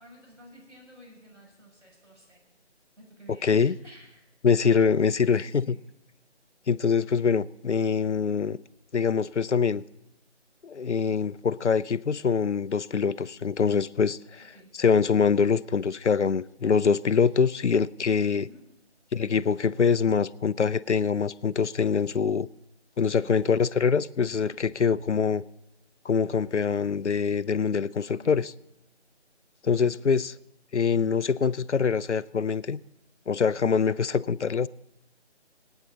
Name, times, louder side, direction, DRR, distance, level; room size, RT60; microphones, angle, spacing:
voice 1, 0.0-2.4 3.0-4.3 5.3-5.8 14.4-14.7 18.4-18.6 23.0-23.4 28.0-28.5 29.8-30.0, right 1 dB, 90° right, 6.2 m, -52 dB
voice 2, 3.4-3.7 4.4-5.8 6.7-8.6 8.9-9.8 10.6-18.5 19.1-22.5 23.0-25.4 26.1-28.5 29.7-30.3 30.7-32.8 33.3-34.7, left 6 dB, 80° left, 0.5 m, -24 dB
26.0 x 9.0 x 3.8 m
figure-of-eight pair, 160°, 35 cm